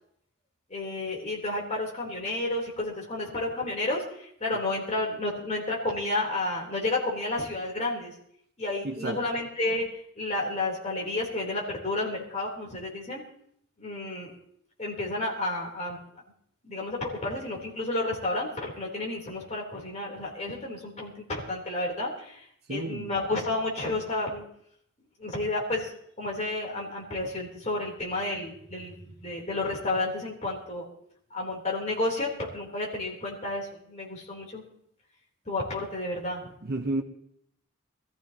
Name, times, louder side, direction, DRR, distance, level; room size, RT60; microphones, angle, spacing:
voice 1, 0.7-8.1 8.6-9.9 10.2-13.2 13.8-14.3 14.8-16.2 16.6-24.4 25.2-25.9 26.2-30.9 31.3-34.6 35.5-36.5, left 2 dB, 35° left, 3.6 m, -31 dB
voice 2, 8.8-9.2 22.7-23.1 36.7-37.0, right 2 dB, 50° right, 1.1 m, -30 dB
22.5 x 14.0 x 3.0 m
head